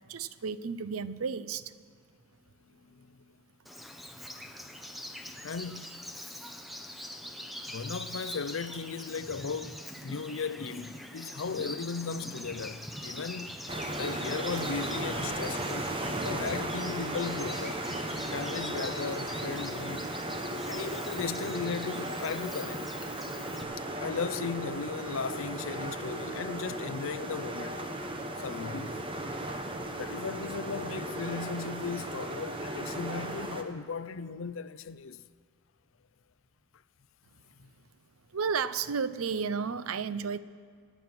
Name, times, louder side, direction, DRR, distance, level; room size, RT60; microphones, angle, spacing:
voice 1, 0.1-1.8 5.3-5.4 38.3-40.4, right 5 dB, 90° right, 0.6 m, -32 dB
voice 2, 2.8-3.3 5.4-5.9 7.7-13.6 13.9-15.9 16.2-17.8 18.3-20.2 20.7-23.0 23.8-27.8 28.4-29.0 30.0-35.2 37.6-37.7, left 5 dB, 65° left, 0.5 m, -36 dB
Bird vocalization bird call bird song, 3.7-23.6, left 1 dB, ahead, 0.9 m, -43 dB
sound 1, 13.7-33.6, right 1 dB, 25° right, 1.1 m, -36 dB
26.5 x 9.2 x 6.0 m
head